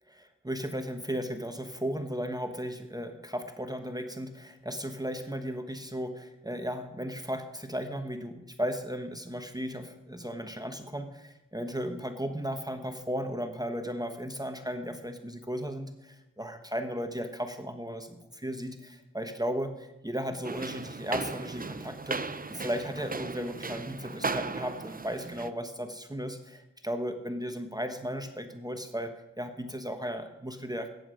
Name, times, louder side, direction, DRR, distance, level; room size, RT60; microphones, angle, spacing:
voice 1, 0.1-30.9, equal, 15° right, 7 dB, 1.1 m, -35 dB
sound 1, 20.4-25.5, right 3 dB, 30° right, 0.7 m, -36 dB
14.5 x 9.6 x 5.1 m, 0.96 s
wide cardioid pair, 60°, 30 cm